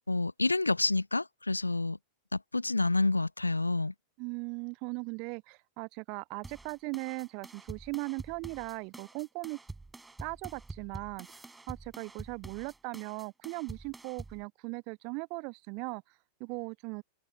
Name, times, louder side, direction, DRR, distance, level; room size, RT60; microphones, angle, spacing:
voice 1, 0.1-2.0 2.3-3.9, left 2 dB, 80° left, 0.6 m, -28 dB
voice 2, 4.2-9.6 10.2-16.0 16.4-17.0, right 34 dB, 45° right, 1.3 m, -39 dB
sound 1, 6.4-14.4, right 3 dB, 10° right, 7.8 m, -47 dB
figure-of-eight pair, 90°, 0 cm